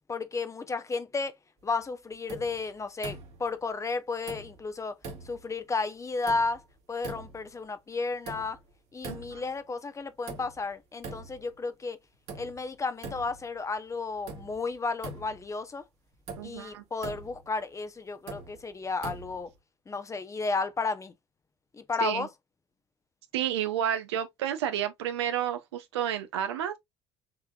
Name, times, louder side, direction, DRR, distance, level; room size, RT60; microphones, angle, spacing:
voice 1, 0.1-1.3 1.6-5.0 5.2-6.6 6.9-8.6 8.9-12.0 12.3-15.8 16.4-19.5 19.9-21.1 21.7-22.3, left 4 dB, 20° left, 0.8 m, -33 dB
sound 1, 2.3-2.7 3.0-3.5 4.3-4.7 5.0-5.5 6.3-6.7 7.0-7.5 8.3-8.7 9.0-9.6 10.3-10.7 11.0-11.5 12.3-12.7 13.0-13.5 14.3-14.6 15.0-15.6 16.3-16.6 17.0-17.5 18.3-18.6 19.0-19.5, right 3 dB, 50° right, 1.8 m, -42 dB
voice 2, 9.1-9.4 16.4-16.8 22.0-22.3 23.3-26.7, right 10 dB, 70° right, 0.9 m, -31 dB
6.1 x 3.5 x 2.4 m
figure-of-eight pair, 60°, 14 cm